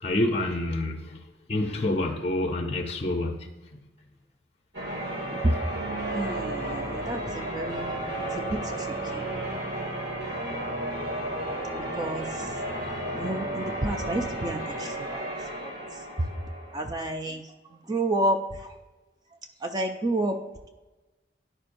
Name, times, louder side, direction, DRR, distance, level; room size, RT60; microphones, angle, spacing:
voice 1, 0.0-1.2 1.5-3.5 3.7-3.8, left 1 dB, 35° left, 3 dB, 0.6 m, -27 dB
Church bell, 4.7-17.0, right 1 dB, 65° right, 1.8 m, -33 dB
voice 2, 5.3-5.6 6.1-8.1 8.4-9.5 11.7-12.5 13.1-15.3 15.6-15.7 16.7-17.5 17.9-18.7 19.6-20.4, right 1 dB, 20° right, 5 dB, 0.4 m, -30 dB
11.0 x 4.4 x 2.6 m, 1.1 s
head